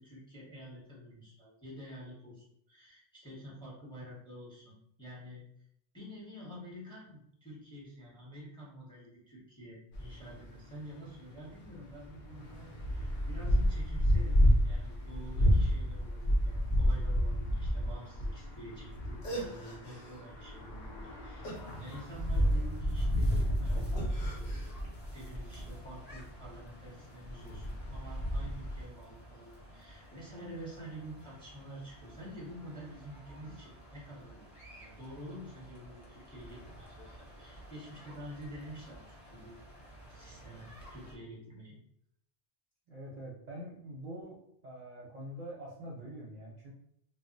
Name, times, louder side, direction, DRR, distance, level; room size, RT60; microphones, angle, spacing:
voice 1, 0.0-5.4 5.9-24.7 25.1-34.4 34.8-39.0 39.3-39.6 40.1-41.8, equal, 5° left, -5 dB, 0.7 m, -48 dB
sound 1, 9.9-26.7 27.0-28.9, equal, 60° left, 0.7 m, -31 dB
sound 2, 18.9-19.0 19.2-20.2 21.4-22.5 23.9-24.7, right 2 dB, 80° left, 1.1 m, -42 dB
sound 3, 21.4-41.2, right 1 dB, 35° left, 0.9 m, -52 dB
voice 2, 42.9-46.7, right 1 dB, 50° right, -5 dB, 0.6 m, -45 dB
2.4 x 2.0 x 3.8 m, 0.72 s
omnidirectional pair, 1.1 m